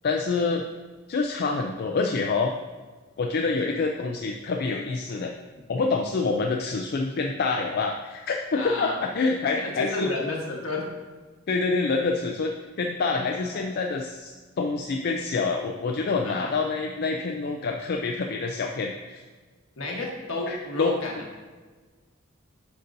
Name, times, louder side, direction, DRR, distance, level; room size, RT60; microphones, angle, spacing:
voice 1, 0.0-0.6 1.1-2.5 3.2-5.3 5.7-10.1 11.5-19.2 20.5-21.0, left 4 dB, 50° left, 2 dB, 0.4 m, -27 dB
voice 2, 8.6-9.0 9.5-10.9 13.5-13.7 16.2-16.5 19.8-21.2, left 2 dB, 70° left, -2 dB, 1.4 m, -31 dB
8.1 x 5.3 x 2.6 m, 1.4 s
head